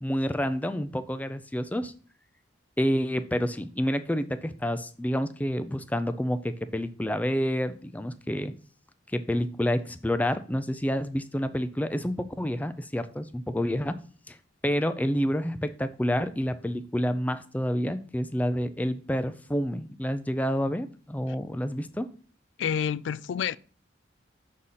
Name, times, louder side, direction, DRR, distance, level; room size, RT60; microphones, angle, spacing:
voice 1, 0.0-1.9 2.8-8.5 9.1-14.0 14.3-14.4 14.6-22.1, equal, 10° left, 0.4 m, -28 dB
voice 2, 22.6-23.6, left 8 dB, 75° left, 0.3 m, -28 dB
6.4 x 4.2 x 5.6 m
head